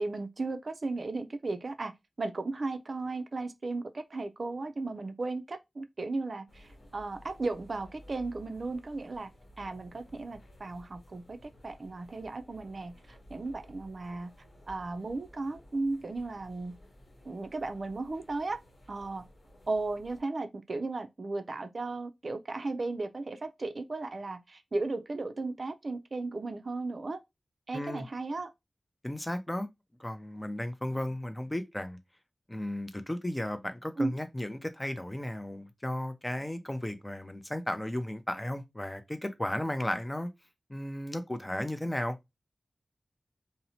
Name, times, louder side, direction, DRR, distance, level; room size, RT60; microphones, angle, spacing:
voice 1, 0.0-1.9 2.2-9.3 9.6-14.3 14.7-16.8 17.2-18.6 18.9-19.3 19.7-27.2 27.7-28.5 34.0-34.1, right 3 dB, 60° right, 0.4 m, -35 dB
sound 1, 6.5-20.2, equal, 65° left, 0.9 m, -55 dB
voice 2, 27.7-28.0 29.0-29.7 30.0-32.0 32.5-40.3 40.7-42.2, left 1 dB, 20° left, 0.4 m, -34 dB
2.7 x 2.0 x 2.8 m
cardioid pair, 50°, 0 cm